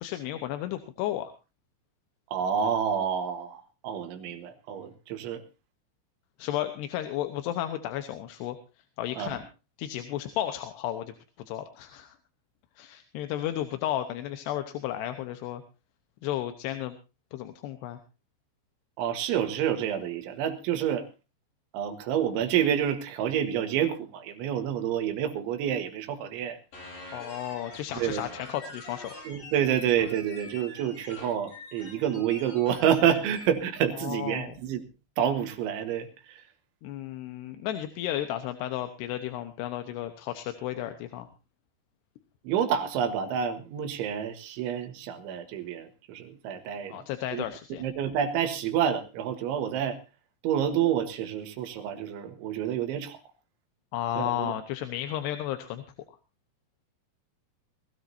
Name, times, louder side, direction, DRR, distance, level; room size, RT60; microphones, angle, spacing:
voice 1, 0.0-1.3 6.4-8.6 9.0-9.4 9.8-12.2 12.8-15.6 16.2-17.0 17.3-18.0 27.1-29.2 34.0-34.5 36.8-41.3 46.9-47.9 53.9-55.8, left 12 dB, 75° left, 8 dB, 2.9 m, -33 dB
voice 2, 2.3-5.4 9.2-9.4 19.0-21.0 21.7-26.6 28.0-28.2 29.3-34.8 35.2-36.4 42.5-47.0 47.3-47.5 47.8-50.0 50.4-53.2 54.2-54.5, right 9 dB, 90° right, 8 dB, 4.0 m, -28 dB
sound 1, 26.7-33.5, left 1 dB, 50° left, 7.6 m, -45 dB
21.0 x 16.0 x 2.7 m, 0.30 s
omnidirectional pair, 5.2 m